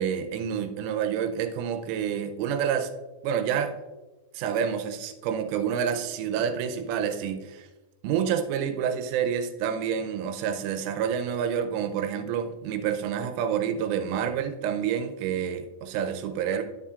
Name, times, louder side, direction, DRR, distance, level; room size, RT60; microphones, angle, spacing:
voice 1, 0.0-2.9 3.2-3.8 4.3-7.7 8.0-16.6, right 8 dB, 90° right, 8 dB, 3.2 m, -28 dB
10.0 x 8.5 x 2.4 m, 1.1 s
omnidirectional pair, 5.5 m